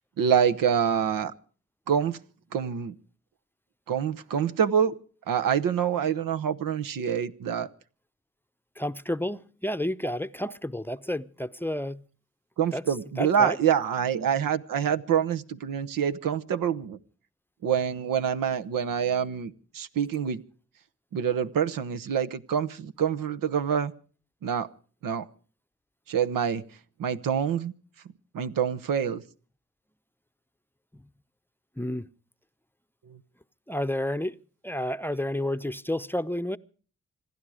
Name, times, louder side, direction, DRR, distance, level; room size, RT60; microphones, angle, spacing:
voice 1, 0.2-1.3 1.9-2.2 2.5-2.9 3.9-4.9 5.3-7.7 12.6-17.0 17.6-20.4 21.1-23.9 24.4-24.7 25.0-25.3 26.1-26.6 27.0-27.7 28.3-29.2 33.1-33.2, right 8 dB, 85° right, 0.9 m, -26 dB
voice 2, 8.8-12.0 12.7-12.8 13.2-13.6 31.8-32.1 33.7-34.4 34.6-36.6, left 1 dB, 5° left, 0.7 m, -30 dB
26.5 x 11.0 x 4.9 m
supercardioid pair, 50°, 32 cm